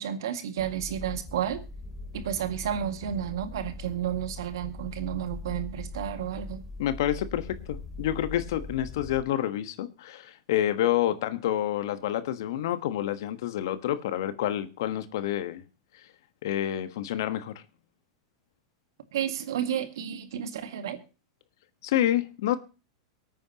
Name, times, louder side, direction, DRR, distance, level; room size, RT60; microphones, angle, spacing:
voice 1, 0.0-1.6 2.1-6.6 19.1-21.0, right 9 dB, 70° right, 2.0 m, -31 dB
sound 1, 0.6-9.2, left 2 dB, 10° left, 3.7 m, -41 dB
voice 2, 6.8-15.6 16.4-17.5 21.8-22.6, left 12 dB, 65° left, 1.3 m, -28 dB
24.0 x 9.0 x 2.9 m
hypercardioid pair, 100°, 2 cm